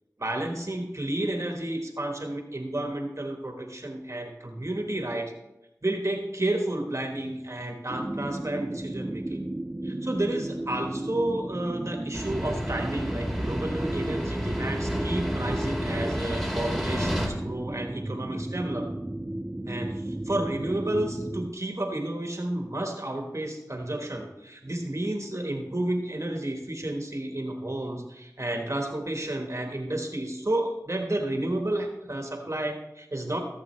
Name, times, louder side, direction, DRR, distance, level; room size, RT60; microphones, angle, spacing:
voice 1, 0.2-5.3 5.8-9.5 9.8-18.9 19.7-33.4, right 1 dB, 50° right, 2 dB, 1.3 m, -31 dB
sound 1, 7.9-21.5, right 1 dB, 20° right, 0.4 m, -34 dB
sound 2, 12.1-17.3, equal, 5° left, 2.3 m, -30 dB
15.5 x 7.5 x 3.2 m, 0.93 s
wide cardioid pair, 45°, 7 cm